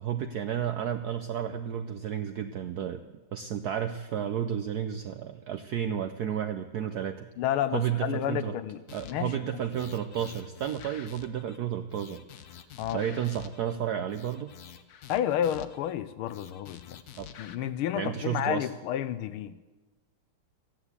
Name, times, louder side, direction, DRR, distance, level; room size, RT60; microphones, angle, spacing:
voice 1, 0.0-3.0 3.3-7.3 7.7-8.5 8.9-12.2 12.5-12.6 12.9-14.5 17.2-17.3 18.0-18.7, right 9 dB, 75° right, 0.8 m, -32 dB
voice 2, 7.4-9.6 12.8-13.0 15.1-17.0 17.4-19.6, left 11 dB, 90° left, 1.5 m, -31 dB
sound 1, 8.9-9.4 9.7-11.6 11.9-13.7 14.1-15.9 16.3-17.6, left 9 dB, 60° left, 1.0 m, -48 dB
14.0 x 9.9 x 8.1 m
omnidirectional pair, 2.4 m